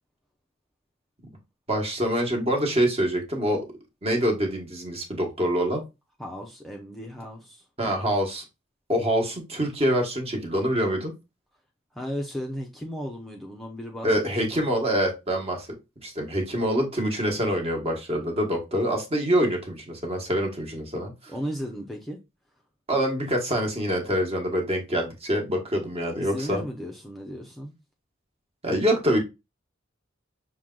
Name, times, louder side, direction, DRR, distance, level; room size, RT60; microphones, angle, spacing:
voice 1, 1.7-3.6 4.0-5.8 7.8-8.4 8.9-11.1 14.0-15.7 16.0-21.1 22.9-26.6 28.6-29.2, equal, 30° right, 1.2 m, -25 dB
voice 2, 6.2-7.6 11.9-14.1 14.5-14.7 21.3-22.2 26.2-27.8, equal, ahead, 0.5 m, -35 dB
6.1 x 2.2 x 3.7 m
head